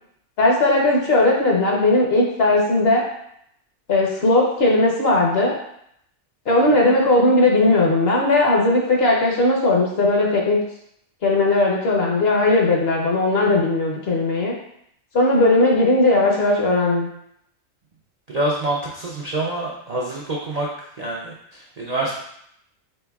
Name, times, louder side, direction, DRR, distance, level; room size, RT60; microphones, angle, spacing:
voice 1, 0.4-3.0 3.9-5.5 6.5-10.6 11.2-14.5 15.1-17.1, left 2 dB, 55° left, -2 dB, 1.0 m, -18 dB
voice 2, 18.3-20.7 21.0-22.1, right 2 dB, 50° right, -4 dB, 0.4 m, -26 dB
4.3 x 3.7 x 2.3 m, 0.73 s
omnidirectional pair, 1.4 m